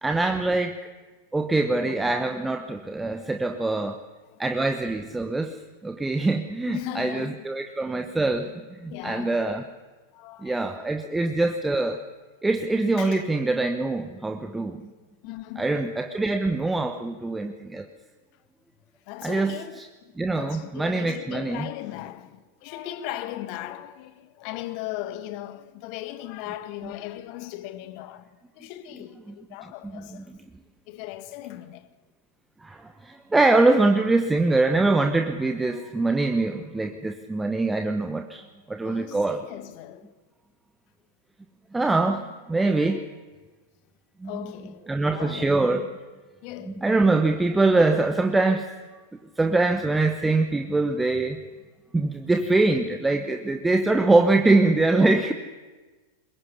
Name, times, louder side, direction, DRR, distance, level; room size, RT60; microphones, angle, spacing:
voice 1, 0.0-0.8 1.3-4.0 4.4-9.6 10.4-12.0 12.4-14.9 15.6-17.9 19.2-19.6 20.2-21.7 29.3-29.4 29.9-30.1 32.6-39.4 41.7-43.0 44.2-44.3 44.9-45.9 46.8-48.7 49.4-51.4 51.9-55.3, right 2 dB, 10° right, 1.1 m, -23 dB
voice 2, 6.7-7.5 8.9-9.4 10.1-10.8 13.0-13.3 15.2-15.8 19.0-30.3 30.9-31.9 38.8-40.1 44.2-45.6 46.4-46.8, left 14 dB, 45° left, 1.6 m, -38 dB
22.5 x 21.0 x 8.4 m
figure-of-eight pair, 90°, 0 cm